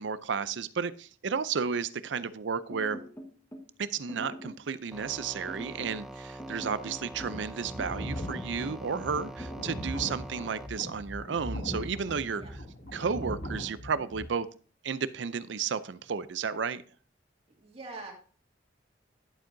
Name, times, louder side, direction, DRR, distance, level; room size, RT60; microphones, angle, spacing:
voice 1, 0.0-3.0 3.8-12.4 12.9-14.5 14.8-16.8, right 6 dB, 75° right, 15 dB, 0.5 m, -33 dB
sound 1, 2.7-3.7 4.1-4.7 5.5-6.0 6.4-7.4 7.8-8.3 9.2-9.7, equal, 15° left, 1.3 m, -43 dB
sound 2, 4.9-10.7, right 1 dB, ahead, 0.5 m, -44 dB
sound 3, 7.0-14.2, equal, 65° left, 2.4 m, -39 dB
voice 2, 17.6-18.1, right 3 dB, 30° right, 0 dB, 2.2 m, -44 dB
11.0 x 7.4 x 2.7 m, 0.41 s
head